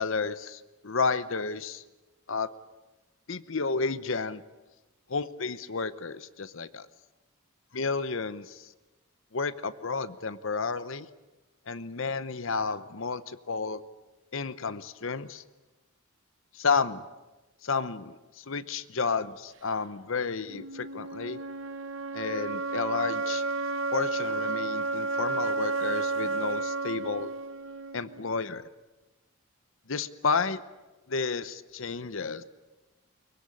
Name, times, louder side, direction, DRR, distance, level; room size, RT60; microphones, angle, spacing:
voice 1, 0.0-1.8 2.3-2.5 3.3-4.4 5.1-6.9 7.7-8.7 9.3-11.1 11.7-13.8 14.3-15.4 16.5-17.0 17.6-21.4 22.1-23.4 23.9-27.3 27.9-28.7 29.9-30.6 31.1-32.4, left 4 dB, 65° left, 15 dB, 0.8 m, -31 dB
sound 1, 20.5-28.5, right 3 dB, 65° right, 1.1 m, -32 dB
23.0 x 21.0 x 9.9 m, 1.1 s
head